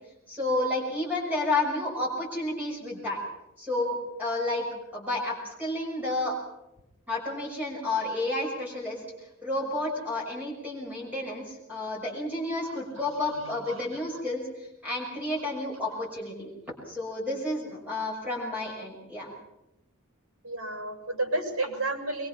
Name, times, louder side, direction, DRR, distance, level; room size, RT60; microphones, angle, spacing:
voice 1, 0.3-3.2 3.6-4.7 4.9-6.3 7.1-9.0 9.4-16.5 16.9-19.3, left 2 dB, 10° right, -3 dB, 6.1 m, -31 dB
voice 2, 13.0-14.0 20.4-22.3, right 2 dB, 80° right, 5 dB, 7.0 m, -32 dB
24.0 x 24.0 x 5.9 m, 0.88 s
head